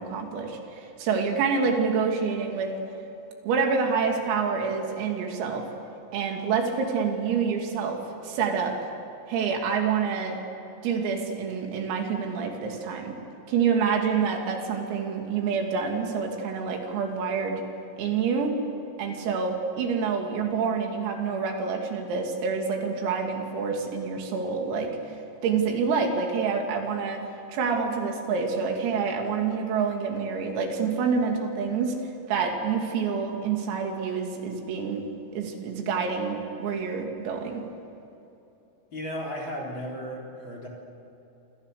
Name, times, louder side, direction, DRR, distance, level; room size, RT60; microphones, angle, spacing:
voice 1, 0.0-2.7 3.5-5.7 6.1-8.8 9.3-10.4 10.8-13.1 13.5-17.6 18.0-18.6 19.0-24.9 25.4-27.2 27.5-32.0 32.3-35.0 35.3-37.6, right 5 dB, 85° right, 2 dB, 5.4 m, -27 dB
voice 2, 38.9-40.7, equal, 25° left, 0 dB, 4.0 m, -35 dB
27.5 x 26.0 x 6.9 m, 2.9 s
omnidirectional pair, 6.0 m